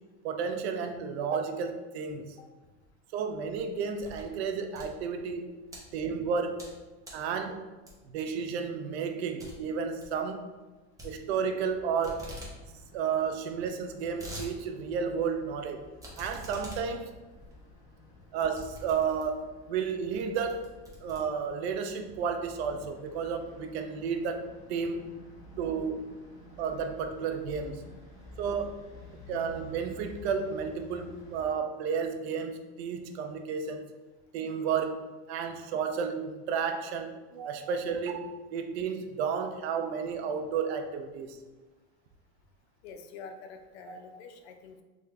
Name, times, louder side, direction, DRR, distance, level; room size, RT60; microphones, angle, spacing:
voice 1, 0.2-2.4 3.1-5.5 5.9-6.7 7.1-7.6 8.1-10.5 11.0-12.3 12.9-15.8 16.2-17.1 18.3-20.6 21.0-25.1 25.6-26.0 26.6-27.9 28.4-28.8 29.3-33.9 34.3-41.4 43.9-44.0, right 6 dB, 75° right, 7 dB, 0.5 m, -32 dB
sound 1, 3.4-4.3 4.6-5.8 6.3-6.8 7.0-7.3 7.9-8.2 8.6-8.7 9.0-9.1 9.4-9.5 9.8-10.1 11.0-11.7 12.0-12.5 12.9-13.0 13.1-13.2 13.8-14.5 14.9-15.0 16.0-19.5 20.1-20.2 20.5-21.7, equal, 10° right, 0.5 m, -45 dB
sound 2, 11.5-31.5, left 1 dB, 10° left, 1.0 m, -52 dB
voice 2, 42.8-44.8, left 5 dB, 75° left, 6 dB, 0.5 m, -46 dB
3.6 x 2.1 x 3.3 m, 1.2 s
supercardioid pair, 155°, 33 cm